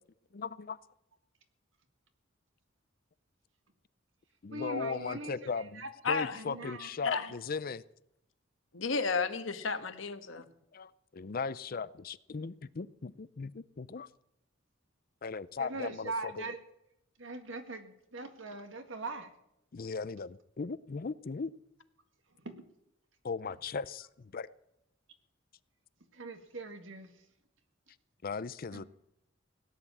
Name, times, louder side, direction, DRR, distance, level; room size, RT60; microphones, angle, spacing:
voice 1, 0.3-0.8 4.4-5.8 6.1-7.8 10.7-14.1 15.2-16.4 19.7-21.5 23.2-24.5 28.2-28.8, left 5 dB, 45° left, 17 dB, 0.5 m, -38 dB
voice 2, 4.5-5.9 6.3-7.3 15.6-16.6 17.2-19.3 22.4-22.6 26.1-27.2 28.7-28.9, right 2 dB, 70° right, 7 dB, 1.9 m, -41 dB
voice 3, 6.0-6.4 7.0-7.3 8.7-10.4, left 4 dB, 75° left, 9 dB, 1.4 m, -32 dB
17.5 x 10.0 x 7.3 m, 0.82 s
head